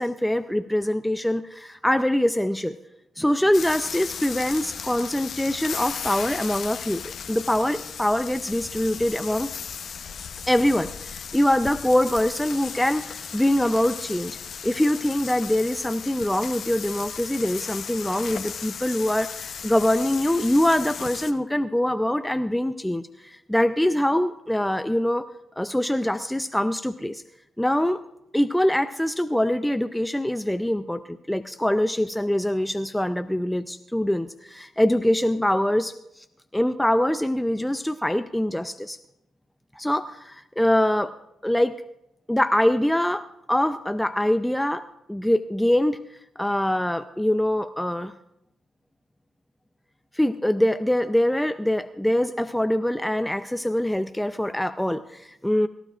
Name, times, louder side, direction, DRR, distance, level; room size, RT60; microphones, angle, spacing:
voice 1, 0.0-2.8 3.2-7.0 7.3-9.5 10.5-14.4 14.6-25.2 25.6-27.2 27.6-28.0 28.3-36.2 36.5-39.0 39.8-41.1 41.4-41.7 42.3-44.8 45.1-46.0 46.4-48.1 50.1-55.7, left 1 dB, 5° left, 9 dB, 0.6 m, -24 dB
sound 1, 3.5-21.3, left 7 dB, 65° left, 0.9 m, -36 dB
22.5 x 12.5 x 2.5 m, 0.82 s
supercardioid pair, 50°, 0 cm